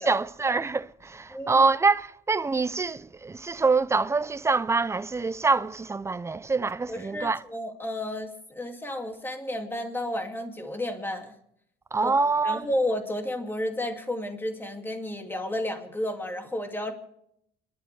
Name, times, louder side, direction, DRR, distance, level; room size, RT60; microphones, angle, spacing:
voice 1, 0.0-7.4 11.9-12.7, right 4 dB, 15° right, 0.5 m, -25 dB
voice 2, 1.3-1.7 6.9-11.3 12.0-12.2 12.4-16.9, left 1 dB, 10° left, 2.4 m, -32 dB
29.5 x 12.0 x 3.4 m
cardioid pair, 110°, 17 cm